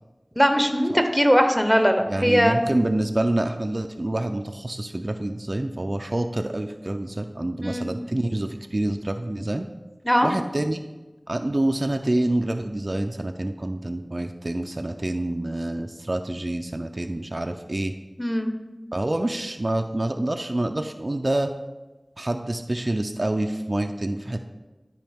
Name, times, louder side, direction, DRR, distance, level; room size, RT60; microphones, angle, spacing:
voice 1, 0.4-2.6 7.6-7.8 10.0-10.3 18.2-18.5, equal, 5° left, 5 dB, 0.9 m, -20 dB
voice 2, 2.1-9.7 10.2-10.8 11.3-17.9 18.9-21.5 22.2-24.4, right 1 dB, 50° right, 6 dB, 0.4 m, -27 dB
12.0 x 4.9 x 3.5 m, 1.2 s
wide cardioid pair, 45°, 0 cm